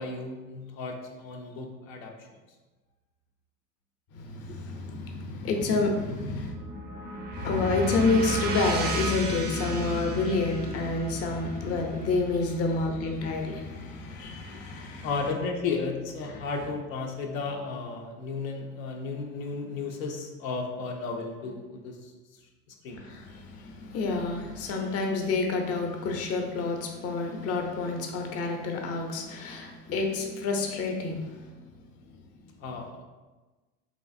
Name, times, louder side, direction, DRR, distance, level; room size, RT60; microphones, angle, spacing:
voice 1, 0.0-2.3 15.0-22.1 22.8-23.0 32.6-33.0, left 4 dB, 85° left, 2 dB, 0.5 m, -34 dB
voice 2, 4.1-6.6 7.3-15.1 16.2-16.4 22.9-31.6, left 3 dB, 40° left, 3 dB, 0.5 m, -29 dB
sound 1, 6.1-14.1, equal, 25° right, 0.3 m, -35 dB
3.0 x 2.5 x 2.5 m, 1.2 s
hypercardioid pair, 85°, 40 cm